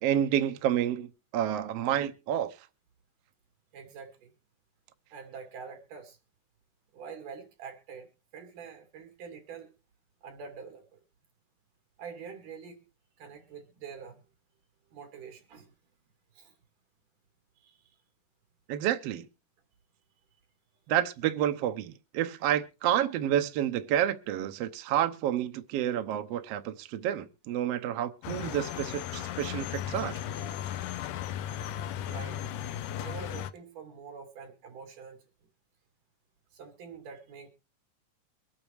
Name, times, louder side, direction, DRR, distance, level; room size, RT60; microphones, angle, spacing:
voice 1, 0.0-1.1 1.3-2.5 18.7-19.3 20.9-30.1, right 11 dB, 70° right, 1.6 m, -29 dB
voice 2, 3.7-4.3 5.1-6.2 6.9-9.7 10.2-11.0 12.0-12.8 13.2-14.2 14.9-15.7 16.3-16.5 17.6-17.8 23.1-23.2 32.0-32.4 33.0-35.2 36.5-37.5, right 6 dB, 90° right, 4.0 m, -45 dB
sound 1, 28.2-33.5, left 10 dB, 90° left, 2.3 m, -36 dB
24.0 x 8.7 x 3.1 m
omnidirectional pair, 3.6 m